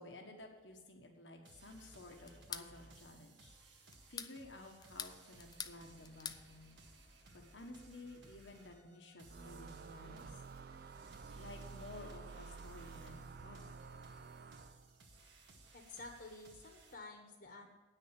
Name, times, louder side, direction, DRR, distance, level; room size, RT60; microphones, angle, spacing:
voice 1, 0.0-3.6 4.1-6.8 7.3-10.4 11.3-13.8, left 2 dB, 90° left, 2 dB, 1.5 m, -54 dB
sound 1, 1.4-16.9, right 2 dB, 80° right, 1.6 m, -62 dB
sound 2, 2.3-2.7 3.9-4.4 4.8-5.8 6.0-6.4, left 7 dB, 20° left, 0.4 m, -45 dB
sound 3, 9.3-15.0, right 4 dB, 55° right, 0.4 m, -51 dB
voice 2, 15.7-17.7, left 3 dB, 60° left, 2 dB, 1.2 m, -51 dB
9.3 x 6.5 x 8.4 m, 1.3 s
head